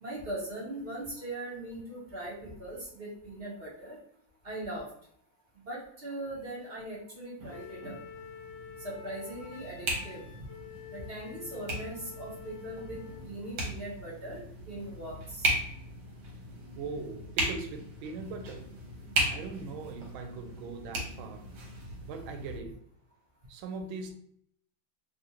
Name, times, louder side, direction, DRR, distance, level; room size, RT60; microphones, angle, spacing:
voice 1, 0.0-4.0 4.4-4.9 5.6-8.0 8.8-10.2 10.9-15.5, right 1 dB, 40° right, 1.0 m, -40 dB
sound 1, 7.4-22.6, right 1 dB, 70° right, 1.6 m, -37 dB
Wind instrument woodwind instrument, 7.5-13.3, left 7 dB, 70° left, 1.3 m, -48 dB
voice 2, 16.8-18.7 19.3-21.5 22.1-22.8 23.5-24.1, right 4 dB, 90° right, 1.4 m, -40 dB
3.4 x 2.5 x 2.8 m
omnidirectional pair, 2.1 m